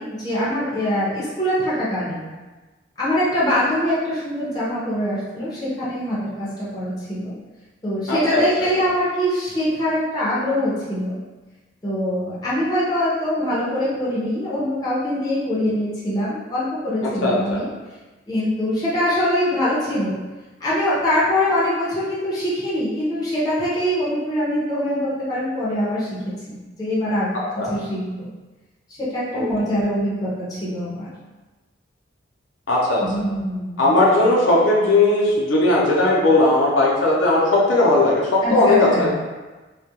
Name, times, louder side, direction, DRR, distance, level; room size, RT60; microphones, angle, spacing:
voice 1, 0.0-2.3 3.0-7.3 7.8-11.1 11.8-17.7 18.3-20.2 20.6-27.3 27.6-28.3 29.0-31.1 33.0-33.9 38.4-39.1, equal, 20° left, -9 dB, 0.6 m, -23 dB
voice 2, 8.1-8.4 17.2-17.6 27.6-27.7 29.3-29.5 32.7-33.0 33.8-39.1, left 2 dB, 85° left, -4 dB, 0.6 m, -17 dB
2.3 x 2.1 x 2.8 m, 1.2 s
head